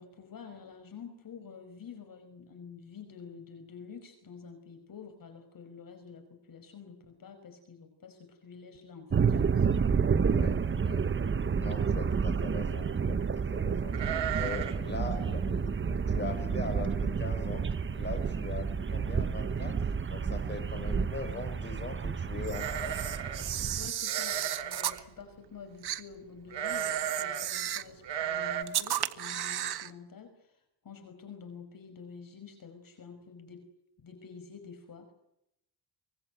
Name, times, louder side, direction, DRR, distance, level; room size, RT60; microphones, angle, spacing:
voice 1, 0.0-9.7 20.9-21.4 23.8-33.7 34.0-35.1, left 6 dB, 50° left, 7 dB, 5.4 m, -49 dB
sound 1, 9.1-23.9, right 6 dB, 30° right, 1.0 m, -30 dB
voice 2, 10.1-10.6 10.8-11.0 11.6-14.0 14.4-17.7 17.9-19.8 20.1-23.1, left 3 dB, 25° left, 6 dB, 6.7 m, -41 dB
sound 2, 13.9-14.9 15.1-15.2 15.7-16.0 16.5-16.6 16.9-17.4 17.8-17.9 19.0-19.1 19.4-19.8 22.5-23.5 24.1-25.0 26.5-27.5 28.0-28.6, right 9 dB, 80° right, 2.7 m, -35 dB
Camera, 22.4-25.0 25.8-26.0 26.6-27.9 28.7-29.9, right 11 dB, 60° right, 1.5 m, -34 dB
25.0 x 20.0 x 9.2 m, 0.81 s
cardioid pair, 110°, 43 cm